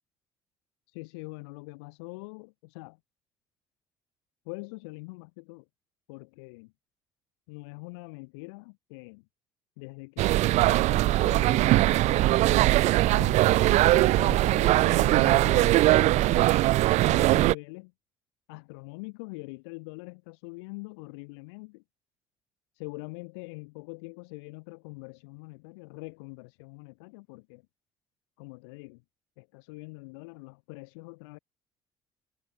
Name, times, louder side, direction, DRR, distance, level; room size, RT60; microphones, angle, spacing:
voice 1, 0.9-3.0 4.4-5.6 6.1-6.7 7.5-9.2 9.8-12.4 13.1-16.5 17.0-17.9 18.5-21.8 22.8-27.6 28.4-29.0 29.4-31.4, left 29 dB, 75° left, 6.5 m, -43 dB
sound 1, 10.2-17.5, right 17 dB, 60° right, 0.5 m, -21 dB
hypercardioid pair, 55°, 14 cm